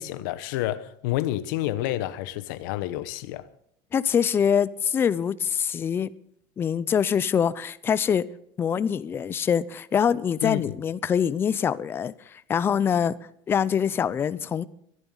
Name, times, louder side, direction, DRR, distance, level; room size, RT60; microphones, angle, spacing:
voice 1, 0.0-3.5 10.4-10.7, left 14 dB, 80° left, 1.0 m, -29 dB
voice 2, 3.9-6.1 6.6-8.3 8.6-13.1 13.5-14.7, left 7 dB, 20° left, 0.5 m, -24 dB
23.0 x 11.0 x 3.9 m
cardioid pair, 145°, 11 cm